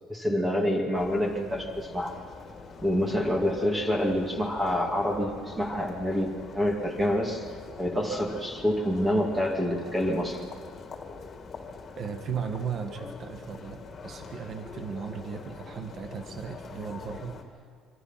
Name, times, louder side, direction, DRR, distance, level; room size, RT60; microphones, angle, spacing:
voice 1, 0.1-2.2 2.8-7.5 7.8-10.4, equal, 10° right, 0 dB, 2.5 m, -27 dB
sound 1, 0.9-17.4, left 4 dB, 25° left, 2.7 m, -44 dB
voice 2, 12.0-17.4, right 6 dB, 30° right, 6 dB, 1.5 m, -36 dB
27.0 x 24.5 x 5.9 m, 2.2 s
cardioid pair, 175°, 0 cm